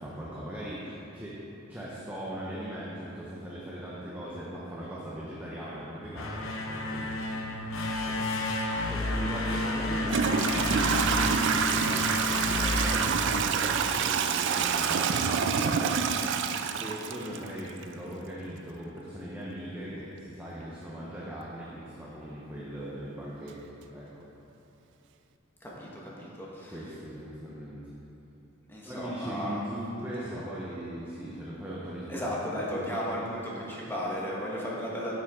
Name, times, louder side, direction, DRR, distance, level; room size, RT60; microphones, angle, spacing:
voice 1, 0.0-1.4 1.7-8.1 8.8-24.3 26.7-27.9 28.8-32.2 32.5-33.2, equal, 10° right, -7 dB, 0.8 m, -39 dB
sound 1, 6.0-14.0, left 1 dB, 90° left, 0.8 m, -31 dB
Toilet flush / Trickle dribble, 9.2-9.3 10.0-17.8, right 6 dB, 60° right, 0.4 m, -27 dB
voice 2, 15.1-15.5 25.6-26.8 28.7-29.6 30.3-30.4 32.1-35.1, equal, 10° left, -5 dB, 1.4 m, -35 dB
8.8 x 7.3 x 3.7 m, 2.9 s
head